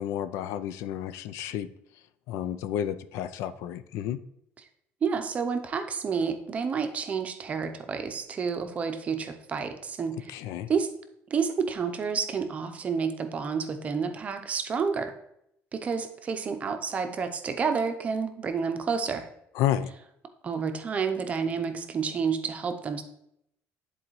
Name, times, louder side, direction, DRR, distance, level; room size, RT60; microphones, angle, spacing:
voice 1, 0.0-1.7 2.3-4.2 10.3-10.7 19.6-19.9, left 10 dB, 80° left, 13 dB, 0.4 m, -31 dB
voice 2, 5.0-10.4 10.7-10.9 11.3-15.1 15.7-19.3 20.4-23.0, right 5 dB, 30° right, 7 dB, 0.6 m, -30 dB
10.5 x 4.1 x 3.1 m, 0.77 s
cardioid pair, 160°, 5 cm